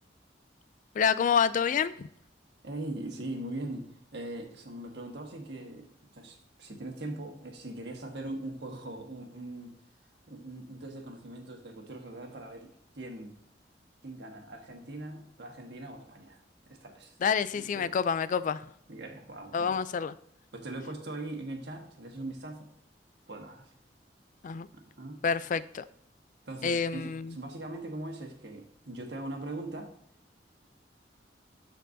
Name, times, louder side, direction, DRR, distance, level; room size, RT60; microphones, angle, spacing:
voice 1, 1.0-2.1 17.2-18.6 19.5-20.1 24.4-24.7 25.2-25.8 26.6-27.4, left 6 dB, 45° left, 16 dB, 0.3 m, -28 dB
voice 2, 2.6-9.7 10.3-13.4 14.0-16.4 16.7-17.1 17.5-17.9 18.9-19.8 20.5-22.7 23.3-23.7 24.7-25.2 26.4-29.9, right 2 dB, 70° right, 2 dB, 1.5 m, -41 dB
13.5 x 4.5 x 2.7 m, 0.71 s
head